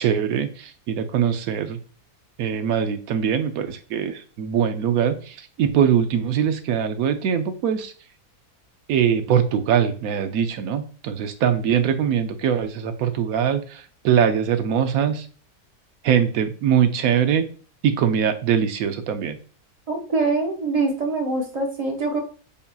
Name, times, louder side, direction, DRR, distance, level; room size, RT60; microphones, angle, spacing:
voice 1, 0.0-1.8 2.4-7.9 8.9-15.3 16.0-17.5 17.8-19.4, right 8 dB, 75° right, 8 dB, 1.0 m, -22 dB
voice 2, 19.9-22.2, right 3 dB, 35° right, 2 dB, 0.7 m, -24 dB
6.9 x 2.7 x 2.3 m, 0.39 s
omnidirectional pair, 1.6 m